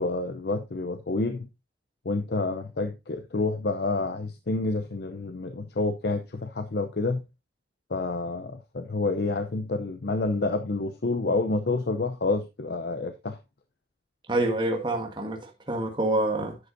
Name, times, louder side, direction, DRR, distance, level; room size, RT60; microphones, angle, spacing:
voice 1, 0.0-1.5 2.0-7.2 7.9-13.4, left 3 dB, 60° left, 0.6 m, -28 dB
voice 2, 14.3-16.6, right 1 dB, 25° right, 1.5 m, -27 dB
10.5 x 7.9 x 2.6 m
head